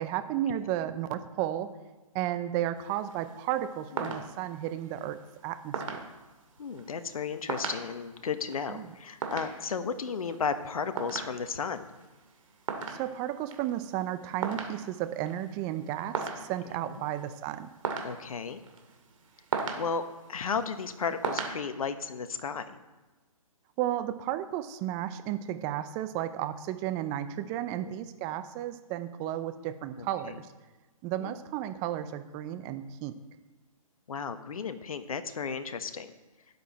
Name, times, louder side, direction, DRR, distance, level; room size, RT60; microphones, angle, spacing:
voice 1, 0.0-1.7 2.1-6.0 8.7-8.9 12.9-17.7 23.8-30.4 31.0-33.1, right 12 dB, 20° right, 11 dB, 0.5 m, -33 dB
sound 1, 2.8-21.5, right 5 dB, 60° right, 2.1 m, -40 dB
voice 2, 3.9-4.2 6.6-11.8 16.8-17.0 18.0-18.6 19.8-20.0 20.3-22.8 27.7-28.0 30.0-30.4 31.2-31.4 34.1-36.1, left 6 dB, 70° left, 10 dB, 1.1 m, -34 dB
12.5 x 9.4 x 4.2 m, 1.2 s
hypercardioid pair, 145°, 19 cm